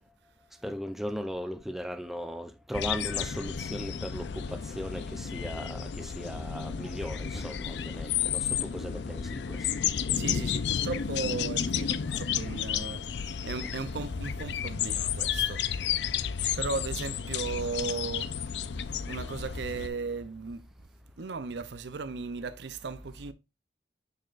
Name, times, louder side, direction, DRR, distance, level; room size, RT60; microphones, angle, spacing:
voice 1, 0.6-9.7 12.1-12.2 13.6-13.7, equal, ahead, 0.4 m, -38 dB
sound 1, 2.7-19.9, left 8 dB, 75° left, 0.4 m, -32 dB
voice 2, 10.1-15.7 16.6-18.8 19.1-20.7 21.2-23.3, right 4 dB, 75° right, 0.6 m, -36 dB
6.6 x 6.5 x 2.4 m
head